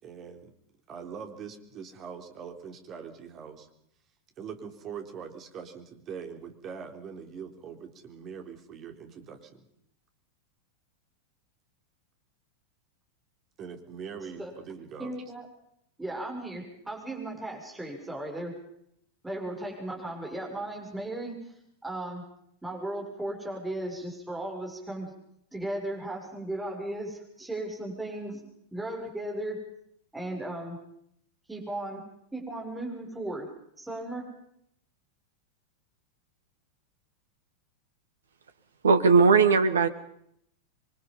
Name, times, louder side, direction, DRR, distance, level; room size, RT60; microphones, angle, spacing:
voice 1, 0.0-0.5 0.9-3.7 4.4-9.6 13.6-15.1, right 6 dB, 30° right, 5 dB, 3.9 m, -42 dB
voice 2, 15.0-15.5 16.0-18.5 19.2-21.5 21.8-22.2 22.6-25.1 25.5-28.4 28.7-29.6 30.1-30.8 31.5-32.0 32.3-33.5 33.8-34.2, right 1 dB, 5° right, 1 dB, 7.0 m, -36 dB
voice 3, 38.8-39.9, right 4 dB, 70° right, 10 dB, 1.7 m, -19 dB
27.0 x 24.0 x 5.6 m, 0.72 s
figure-of-eight pair, 90°, 0 cm